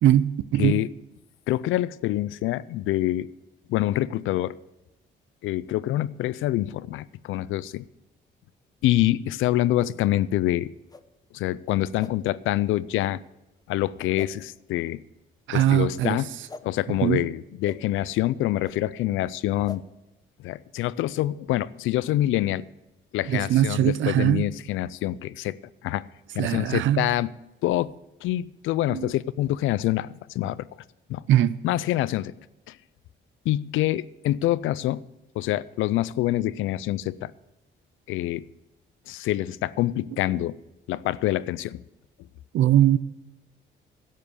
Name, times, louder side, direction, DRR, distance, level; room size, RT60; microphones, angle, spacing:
voice 1, 0.0-0.7 15.5-16.2 17.0-17.2 23.3-24.4 26.4-27.1 28.9-29.1 31.3-31.5 42.5-43.0, right 12 dB, 75° right, 0.5 m, -21 dB
voice 2, 1.5-3.3 3.7-4.6 5.4-7.8 8.8-10.7 11.3-13.2 13.7-15.0 15.5-16.4 16.6-19.8 20.4-22.7 23.1-25.6 25.8-26.1 26.3-27.3 27.6-30.6 31.1-31.2 31.6-32.3 32.7-32.8 33.5-35.1 35.4-37.3 38.1-38.4 39.1-40.6 40.9-41.8, left 14 dB, 85° left, 0.4 m, -26 dB
sound 1, 9.8-9.9 10.9-11.0 12.0-12.1 13.0-13.1 14.1-14.3 15.5-15.7 16.5-16.6 17.6-17.8 18.6-18.8 19.6-19.8, left 3 dB, 20° left, 0.8 m, -42 dB
12.0 x 7.6 x 6.7 m
cardioid pair, 90°, 20 cm